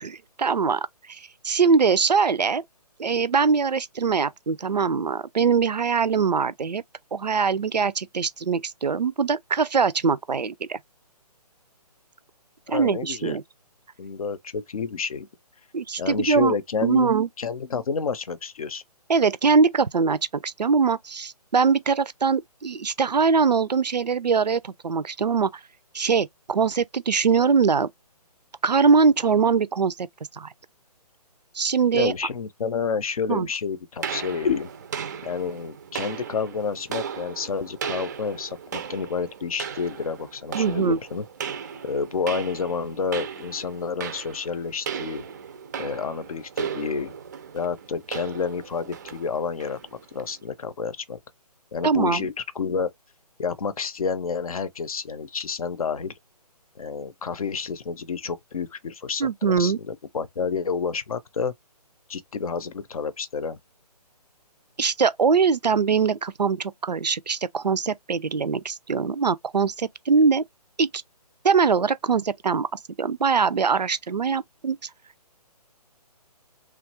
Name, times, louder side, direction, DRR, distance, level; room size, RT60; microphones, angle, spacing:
voice 1, 0.0-2.6 3.0-6.8 7.1-10.8 12.7-13.4 15.7-16.5 16.8-17.3 19.1-25.5 25.9-27.9 28.6-30.1 30.3-30.5 31.5-32.1 33.3-33.5 40.5-41.0 51.8-52.2 59.2-59.8 64.8-70.4 70.8-71.0 71.4-72.7 73.0-74.9, right 5 dB, 85° right, 0.5 m, -22 dB
voice 2, 12.7-13.4 14.0-15.3 16.0-18.8 31.9-34.7 35.2-41.2 41.8-45.3 45.8-47.1 47.5-51.2 51.7-52.9 53.4-56.1 56.8-61.5 62.1-63.6, left 5 dB, 60° left, 0.6 m, -29 dB
sound 1, 34.0-50.4, right 7 dB, 25° right, 0.4 m, -36 dB
3.1 x 2.3 x 2.9 m
figure-of-eight pair, 140°, 21 cm